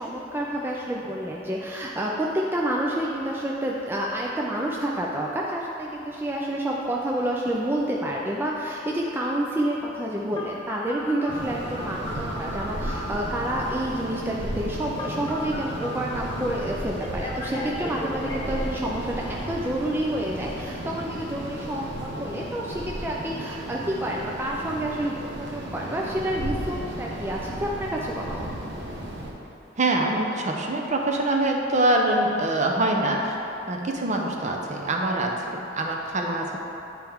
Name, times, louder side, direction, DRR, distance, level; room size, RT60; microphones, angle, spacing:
voice 1, 0.0-28.5, right 1 dB, 10° right, -3 dB, 0.4 m, -29 dB
Telephone, 10.3-13.7 15.0-16.5 17.0-18.6, left 2 dB, 20° left, 1.1 m, -36 dB
sound 1, 11.3-29.3, right 1 dB, 65° right, 1.0 m, -34 dB
voice 2, 29.8-33.4 33.7-36.6, right 1 dB, 40° right, 1 dB, 0.7 m, -24 dB
9.8 x 4.4 x 3.5 m, 2.9 s
head